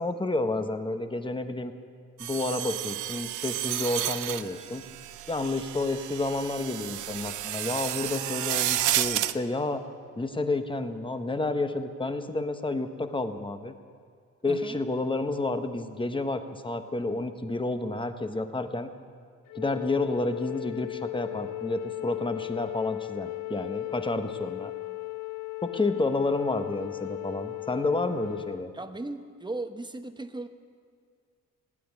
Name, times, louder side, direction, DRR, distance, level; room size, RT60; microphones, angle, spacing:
voice 1, 0.0-1.7 2.2-4.8 5.3-9.8 10.2-13.7 14.4-18.9 19.5-24.7 25.6-28.7, left 2 dB, 15° left, 8 dB, 1.1 m, -30 dB
sound 1, 2.2-9.3, right 14 dB, 75° right, 0.6 m, -31 dB
voice 2, 14.5-14.8 28.7-30.5, right 2 dB, 15° right, 8 dB, 1.0 m, -37 dB
Wind instrument woodwind instrument, 19.5-28.6, left 27 dB, 80° left, 0.5 m, -36 dB
17.0 x 8.6 x 9.6 m, 2.1 s
cardioid pair, 90°, 30 cm